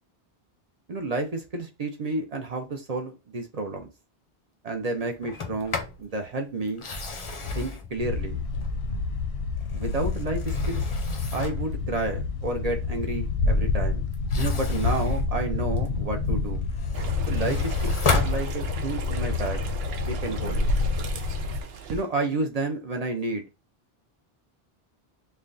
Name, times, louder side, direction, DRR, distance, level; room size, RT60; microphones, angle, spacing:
voice 1, 0.9-3.9 4.6-6.8 7.5-8.4 9.7-10.8 11.3-14.1 14.3-16.6 17.3-19.6 20.0-20.7 21.9-23.4, right 2 dB, 45° right, 0.6 m, -31 dB
Sliding door, 5.2-6.0 6.7-9.0 9.6-11.7 14.1-16.1 16.5-19.0, left 3 dB, 40° left, 0.5 m, -32 dB
sound 1, 8.0-21.6, left 4 dB, 90° left, 0.8 m, -28 dB
sound 2, 16.9-22.0, right 6 dB, 75° right, 0.8 m, -38 dB
3.2 x 2.2 x 3.7 m
omnidirectional pair, 1.0 m